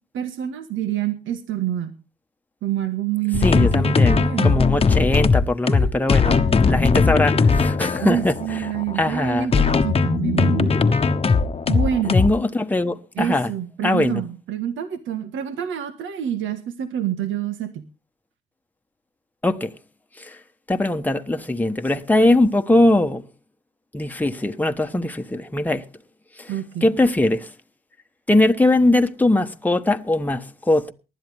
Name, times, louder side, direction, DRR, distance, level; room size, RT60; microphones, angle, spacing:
voice 1, 0.1-1.9 2.6-4.6 5.6-5.9 6.3-6.4 8.0-10.8 11.7-12.2 13.1-17.8 26.5-26.9, right 10 dB, 75° right, 1.6 m, -27 dB
sound 1, 3.3-12.3, left 4 dB, 30° left, 1.1 m, -19 dB
voice 2, 3.4-8.6 9.0-9.5 12.0-13.5 13.8-14.2 19.4-19.7 20.2-20.4 20.7-23.2 23.9-25.8 26.4-26.5 26.8-27.5 28.3-30.9, left 2 dB, 10° left, 1.2 m, -21 dB
19.5 x 12.0 x 3.5 m
cardioid pair, 90°, 20 cm